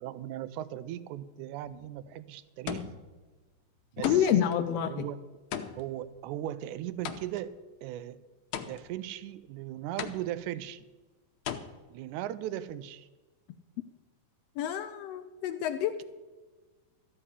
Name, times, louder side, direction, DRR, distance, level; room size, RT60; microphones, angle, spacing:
voice 1, 0.0-2.9 3.9-4.5 4.9-5.2 5.8-7.5 7.8-8.2 8.6-10.9 11.9-13.1, right 12 dB, 85° right, 14 dB, 2.1 m, -38 dB
sound 1, 1.6-2.0 2.7-3.2 4.0-4.6 5.5-7.6 8.5-9.1 10.0-10.6 11.5-11.6, left 8 dB, 70° left, 2.0 m, -38 dB
voice 2, 4.0-4.9 14.6-15.9, left 10 dB, 90° left, 9 dB, 1.4 m, -27 dB
14.0 x 5.6 x 9.7 m, 1.3 s
omnidirectional pair, 3.6 m